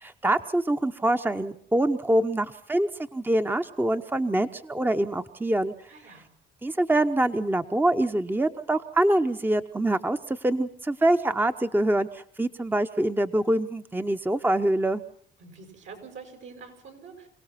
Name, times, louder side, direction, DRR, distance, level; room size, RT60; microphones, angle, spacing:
voice 1, 0.0-5.7 6.6-15.0, right 1 dB, 10° right, 8 dB, 0.9 m, -25 dB
voice 2, 5.9-6.3 15.4-17.3, right 5 dB, 70° right, 5 dB, 7.5 m, -45 dB
28.0 x 17.5 x 5.8 m, 0.62 s
cardioid pair, 90°, 20 cm